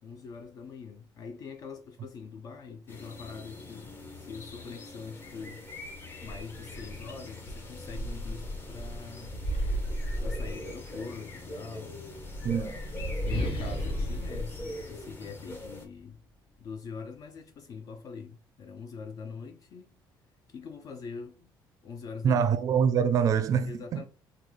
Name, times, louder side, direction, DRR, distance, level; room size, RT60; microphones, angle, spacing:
voice 1, 0.0-9.4 10.2-12.3 12.5-16.2 16.6-19.9 20.5-21.5 21.8-22.5 23.7-24.0, left 5 dB, 45° left, 0.4 m, -43 dB
sound 1, 2.9-15.9, left 1 dB, 25° left, 0.8 m, -43 dB
sound 2, 7.4-11.1 12.0-15.6, equal, 70° left, 1.4 m, -34 dB
voice 2, 12.4-12.8 22.2-24.0, right 7 dB, 45° right, 0.4 m, -25 dB
3.1 x 2.3 x 3.6 m
cardioid pair, 150°, 8 cm